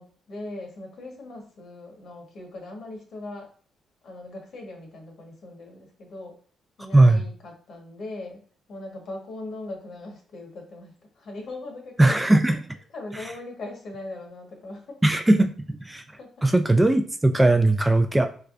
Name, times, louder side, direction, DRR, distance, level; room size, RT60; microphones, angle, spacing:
voice 1, 0.0-3.5 4.0-6.4 6.8-12.3 12.9-15.0 16.2-16.5, left 2 dB, 60° left, 1 dB, 1.2 m, -40 dB
voice 2, 12.0-12.7 15.0-16.0 16.4-18.3, right 2 dB, 10° right, 6 dB, 0.3 m, -19 dB
3.4 x 3.2 x 2.4 m, 0.44 s
cardioid pair, 90°, 0 cm